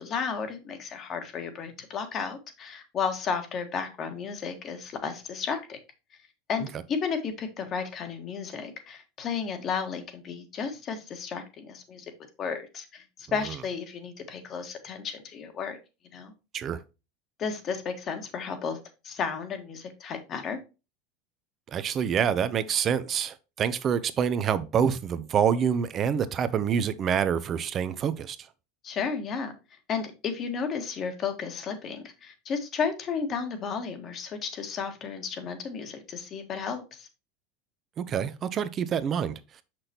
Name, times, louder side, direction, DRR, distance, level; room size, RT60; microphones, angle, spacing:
voice 1, 0.0-5.8 6.5-12.0 12.4-15.8 16.1-16.3 17.4-18.8 19.0-20.6 28.8-29.5 29.9-37.1, left 6 dB, 40° left, 1.7 m, -33 dB
voice 2, 21.7-28.4 38.0-39.6, right 8 dB, 40° right, 0.7 m, -27 dB
6.4 x 6.0 x 2.9 m
hypercardioid pair, 85°, 0 cm